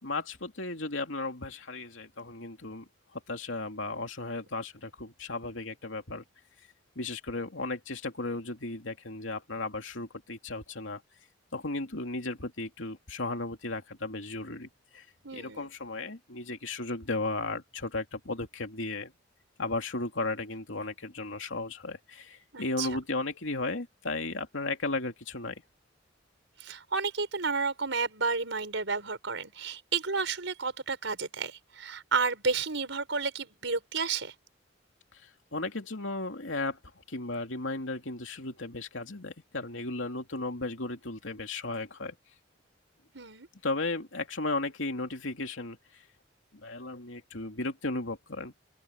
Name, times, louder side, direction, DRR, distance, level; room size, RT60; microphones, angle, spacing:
voice 1, 0.0-2.9 3.1-6.2 7.0-11.0 11.5-15.0 15.3-19.1 19.6-25.6 35.1-36.8 37.1-42.1 43.6-45.8 46.5-48.5, left 2 dB, 80° left, 2.9 m, -35 dB
voice 2, 15.2-15.7 22.5-22.9 26.6-34.3 43.1-43.5, right 4 dB, 75° right, 5.5 m, -31 dB
open air
head